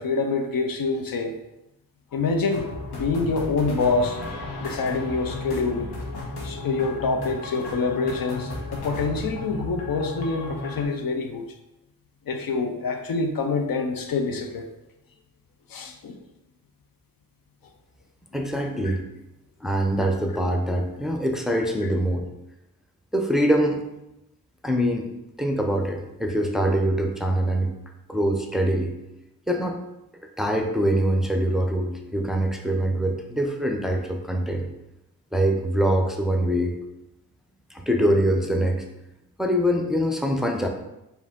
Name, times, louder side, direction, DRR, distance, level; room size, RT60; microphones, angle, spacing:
voice 1, 0.0-1.4 2.1-2.7 2.9-4.2 4.6-5.9 6.4-11.4 12.3-14.7 15.7-16.2 18.5-18.6 18.8-19.0, left 4 dB, 60° left, 5 dB, 0.6 m, -26 dB
sound 1, 2.5-10.8, left 2 dB, 80° left, 1.0 m, -34 dB
voice 2, 18.3-19.0 19.6-22.3 23.1-23.8 24.6-25.1 25.4-27.7 28.1-28.9 29.5-29.8 30.4-34.7 35.3-36.7 37.7-38.8 39.4-40.7, equal, ahead, 3 dB, 0.6 m, -24 dB
4.8 x 2.7 x 3.6 m, 0.92 s
cardioid pair, 45°, 39 cm